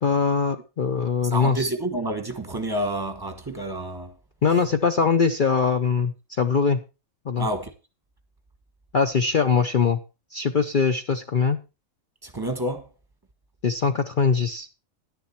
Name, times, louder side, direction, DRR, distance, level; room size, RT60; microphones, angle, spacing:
voice 1, 0.0-1.7 4.4-6.8 7.3-7.5 8.9-10.0 10.3-11.6 13.6-14.7, left 5 dB, 45° left, 0.8 m, -22 dB
voice 2, 1.2-4.2 7.4-7.7 12.2-12.9, right 1 dB, 15° right, 1.3 m, -29 dB
11.0 x 10.5 x 4.3 m
omnidirectional pair, 1.4 m